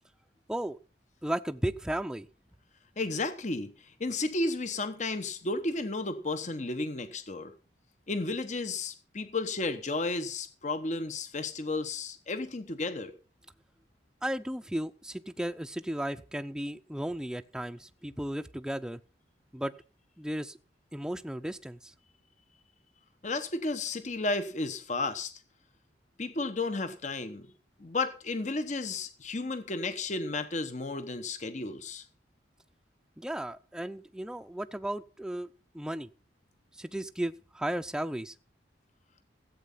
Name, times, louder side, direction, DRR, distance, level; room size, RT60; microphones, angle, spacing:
voice 1, 0.5-0.8 1.2-2.3 14.2-19.0 19.5-19.7 20.2-20.6 20.9-21.9 33.2-35.5 35.7-36.1 36.7-38.4, right 1 dB, 5° right, 13 dB, 0.5 m, -35 dB
voice 2, 3.0-7.5 8.1-13.1 23.2-25.3 26.2-27.5 27.8-32.0, left 3 dB, 40° left, 11 dB, 1.0 m, -33 dB
14.5 x 8.5 x 5.6 m, 0.36 s
head